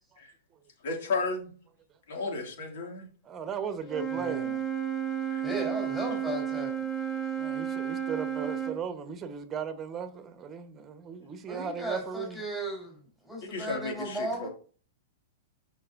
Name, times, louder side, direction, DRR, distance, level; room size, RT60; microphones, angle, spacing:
voice 1, 0.8-1.5 2.1-3.1 5.3-5.4 13.4-14.5, left 3 dB, 65° left, 2.4 m, -33 dB
voice 2, 3.2-4.5 7.3-12.4, right 7 dB, 25° right, 1.2 m, -37 dB
Wind instrument woodwind instrument, 3.8-8.8, right 8 dB, 25° left, 2.6 m, -32 dB
voice 3, 4.1-4.6 5.4-6.7 11.5-14.5, right 1 dB, ahead, 3.8 m, -35 dB
11.0 x 5.4 x 2.7 m
hypercardioid pair, 115°, 0 cm